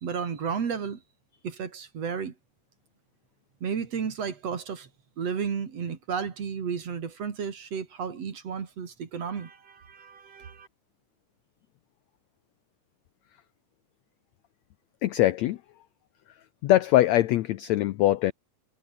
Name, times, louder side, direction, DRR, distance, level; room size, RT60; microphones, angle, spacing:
voice 1, 0.0-1.0 1.4-2.3 3.6-4.9 5.2-10.7, right 6 dB, 50° right, 3.4 m, -33 dB
voice 2, 15.0-15.6 16.6-18.3, left 14 dB, 80° left, 1.6 m, -22 dB
omnidirectional pair, 4.0 m